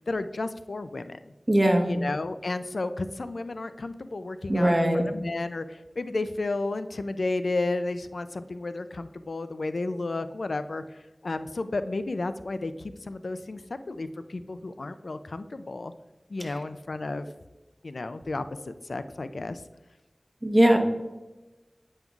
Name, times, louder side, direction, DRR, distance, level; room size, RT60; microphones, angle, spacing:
voice 1, 0.0-1.3 1.8-13.6 13.9-15.9 16.3-17.3 17.8-19.6, left 2 dB, 90° left, 11 dB, 0.3 m, -32 dB
voice 2, 1.5-1.9 4.5-5.1 20.4-20.8, right 1 dB, 30° right, 2 dB, 1.1 m, -20 dB
9.0 x 5.4 x 2.3 m, 1.1 s
wide cardioid pair, 50°, 0 cm